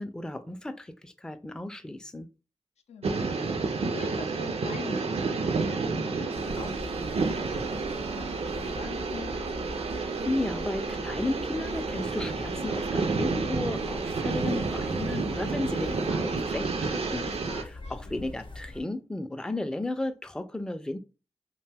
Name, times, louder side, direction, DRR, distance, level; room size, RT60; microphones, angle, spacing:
voice 1, 0.0-2.3 9.9-21.0, left 2 dB, 5° left, 9 dB, 0.3 m, -34 dB
voice 2, 2.9-6.8 8.0-9.5 17.8-18.3, left 6 dB, 85° left, 6 dB, 0.4 m, -44 dB
sound 1, 3.0-17.6, right 4 dB, 65° right, 0.4 m, -30 dB
sound 2, 6.3-18.8, left 2 dB, 50° left, 0.7 m, -42 dB
Wind instrument woodwind instrument, 7.7-11.8, equal, 85° right, 0.9 m, -53 dB
2.5 x 2.2 x 3.3 m, 0.33 s
cardioid pair, 50°, 11 cm